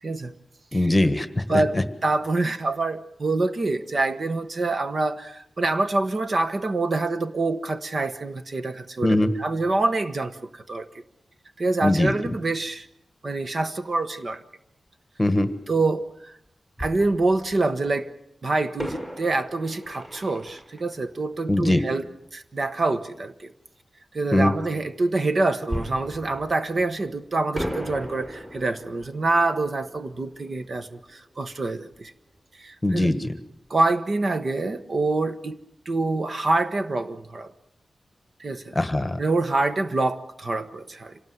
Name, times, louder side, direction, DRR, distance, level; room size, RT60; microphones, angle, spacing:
voice 1, 0.7-1.8 9.0-9.3 11.8-12.1 15.2-15.5 21.5-21.8 24.3-24.5 32.8-33.3 38.7-39.2, left 1 dB, 15° left, 10 dB, 1.5 m, -21 dB
voice 2, 2.0-11.0 11.6-12.9 13.2-14.4 15.7-16.4 16.8-18.1 18.4-22.1 22.3-23.5 24.1-32.1 32.6-33.1 33.7-35.6 35.8-37.5 38.4-38.8 39.2-41.2, right 2 dB, 40° right, 9 dB, 1.1 m, -26 dB
Fireworks, 16.8-17.9 18.8-22.2 25.7-27.1 27.5-32.1 32.3-32.4 33.0-33.2, equal, 20° right, 5.9 m, -37 dB
26.5 x 18.5 x 8.0 m, 0.76 s
wide cardioid pair, 175°, 0 cm